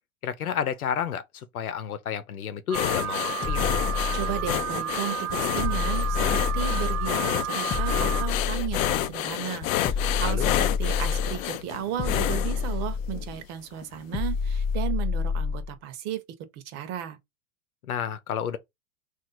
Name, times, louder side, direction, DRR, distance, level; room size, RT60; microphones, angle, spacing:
voice 1, 0.2-3.6 10.2-10.5 17.8-18.6, left 8 dB, 85° left, 0.9 m, -31 dB
sound 1, 2.7-13.3 13.8-14.0 14.4-14.5, left 13 dB, 65° left, 0.6 m, -29 dB
Alarm, 2.7-8.3, right 11 dB, 70° right, 0.5 m, -32 dB
sound 2, 3.4-4.7 5.6-7.2 7.7-9.1 9.8-11.5 12.0-13.4 14.1-15.7, left 5 dB, 15° left, 0.4 m, -28 dB
voice 2, 4.1-16.2 16.5-17.2, right 10 dB, 35° right, 0.9 m, -34 dB
3.2 x 2.7 x 4.0 m
hypercardioid pair, 120°, 43 cm